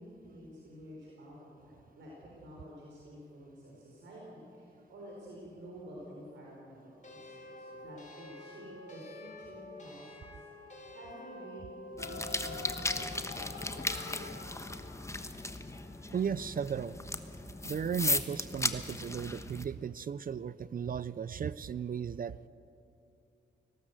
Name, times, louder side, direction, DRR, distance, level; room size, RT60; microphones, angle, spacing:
voice 1, 0.0-10.4 10.9-14.4, equal, 85° right, -4 dB, 4.2 m, -50 dB
sound 1, 7.0-12.7, left 1 dB, 40° left, 4.1 m, -48 dB
sound 2, 12.0-18.0, left 4 dB, 85° left, 1.6 m, -48 dB
sound 3, 12.0-19.6, left 2 dB, 15° left, 1.2 m, -36 dB
voice 2, 16.1-17.0 17.6-22.3, right 7 dB, 50° right, 17 dB, 0.5 m, -35 dB
19.5 x 17.0 x 8.1 m, 2.6 s
cardioid pair, 70°, 19 cm